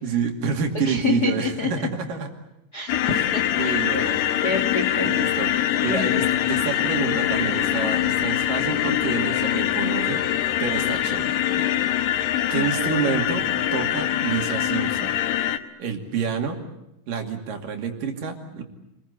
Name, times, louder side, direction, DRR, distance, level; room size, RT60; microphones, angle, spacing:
voice 1, 0.0-2.3 3.1-3.3 3.6-4.2 4.5-4.6 5.0-5.5 5.8-10.2 10.6-11.8 12.5-13.4 13.7-15.1 15.8-16.7 17.1-18.6, right 6 dB, 60° right, 4 dB, 4.1 m, -28 dB
voice 2, 0.8-1.7 2.7-4.1 4.4-5.1 5.7-6.1 12.3-12.7, left 4 dB, 40° left, 4 dB, 1.5 m, -27 dB
sound 1, 2.9-15.6, left 12 dB, 90° left, 3.1 m, -23 dB
28.0 x 21.0 x 8.3 m, 0.88 s
omnidirectional pair, 4.4 m